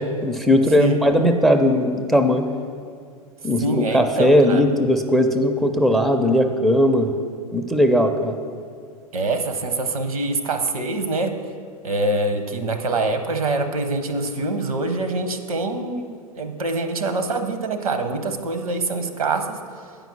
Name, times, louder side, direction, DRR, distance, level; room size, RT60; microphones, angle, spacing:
voice 1, 0.0-2.5 3.4-7.1 7.5-8.4, equal, ahead, 6 dB, 0.4 m, -18 dB
voice 2, 0.8-1.1 3.6-4.7 9.1-11.4 11.8-19.6, right 2 dB, 75° right, 8 dB, 0.8 m, -25 dB
9.1 x 5.3 x 6.1 m, 2.3 s
figure-of-eight pair, 90°, 18 cm